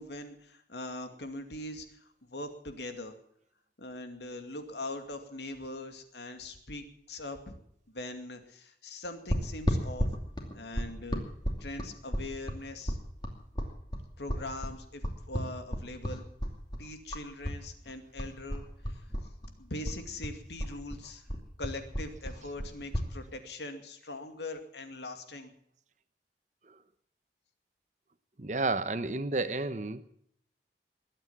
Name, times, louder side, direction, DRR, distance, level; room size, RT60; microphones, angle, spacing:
voice 1, 0.0-3.1 3.8-7.6 7.9-10.1 10.5-11.3 11.6-13.0 14.2-16.2 16.8-19.0 19.6-21.2 21.6-25.5, left 2 dB, 80° left, 7 dB, 2.4 m, -42 dB
sound 1, 9.3-17.6 17.9-19.5 19.8-23.1, equal, 25° left, 2.6 m, -33 dB
voice 2, 28.4-30.0, right 3 dB, 45° right, 13 dB, 0.9 m, -31 dB
21.5 x 9.0 x 7.2 m, 0.69 s
head